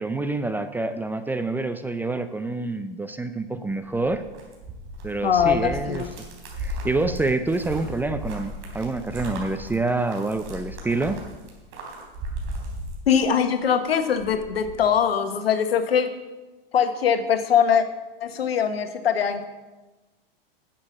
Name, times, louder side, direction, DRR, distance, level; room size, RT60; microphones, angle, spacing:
voice 1, 0.0-4.2 5.0-6.0 6.6-11.2, right 3 dB, 5° right, 9 dB, 0.4 m, -27 dB
sound 1, 3.7-13.6 13.9-14.8, equal, 45° right, 3.7 m, -36 dB
voice 2, 5.2-6.1 13.1-16.1 16.7-17.8 18.2-19.4, left 7 dB, 85° left, 9 dB, 1.3 m, -22 dB
10.5 x 7.6 x 7.2 m, 1.1 s
hypercardioid pair, 115°, 29 cm